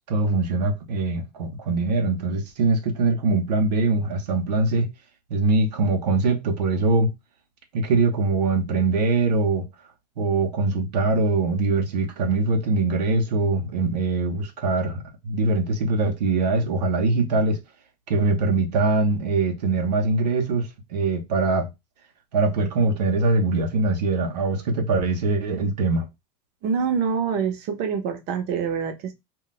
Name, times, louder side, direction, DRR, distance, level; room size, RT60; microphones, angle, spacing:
voice 1, 0.1-4.9 5.3-7.1 7.7-9.7 10.2-17.6 18.1-21.7 22.3-26.1, right 3 dB, 85° right, 0.7 m, -22 dB
voice 2, 26.6-29.1, right 6 dB, 50° right, 0.7 m, -25 dB
2.3 x 2.2 x 3.9 m
hypercardioid pair, 100°, 21 cm